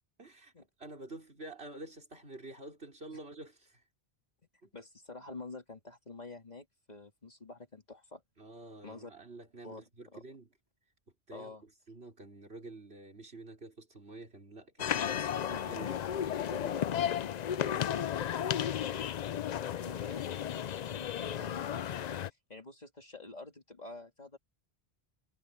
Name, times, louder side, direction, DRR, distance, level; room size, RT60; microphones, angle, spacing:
voice 1, 0.2-0.5 0.8-3.8 4.6-4.7 8.4-10.5 11.3-17.1, right 2 dB, 70° right, 5.0 m, -49 dB
voice 2, 4.7-8.2 8.8-9.1 9.6-9.8 10.1-10.2 11.3-11.6 17.6-19.0 19.8-22.2 22.5-24.4, left 3 dB, 40° left, 2.6 m, -48 dB
sound 1, 14.8-22.3, left 9 dB, 55° left, 0.5 m, -34 dB
omnidirectional pair, 1.1 m